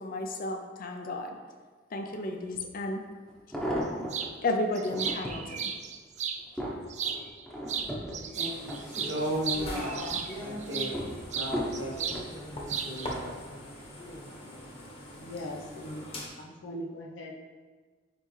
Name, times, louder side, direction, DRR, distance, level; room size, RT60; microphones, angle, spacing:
voice 1, 0.0-1.4 1.9-3.0 4.4-5.7, left 2 dB, 50° left, 4 dB, 0.6 m, -32 dB
sound 1, 2.5-2.6 3.3-4.3 4.8-5.5 6.0-9.4 9.8-10.3 10.9-12.3 13.1-13.4 13.7-13.8, equal, 5° left, 0.9 m, -36 dB
sound 2, 4.1-4.3 4.7-6.4 6.9-7.4 7.7-10.9 11.3-12.2 12.5-13.1, right 7 dB, 40° right, 0.4 m, -34 dB
voice 2, 8.3-10.1 10.4-11.1 11.3-12.3 12.8-13.4, equal, 70° right, -3 dB, 1.5 m, -35 dB
sound 3, 8.4-16.3, equal, 30° left, 1.1 m, -41 dB
voice 3, 15.1-16.0 16.4-17.3, equal, 80° left, -1 dB, 0.8 m, -40 dB
9.7 x 3.3 x 3.2 m, 1.4 s
head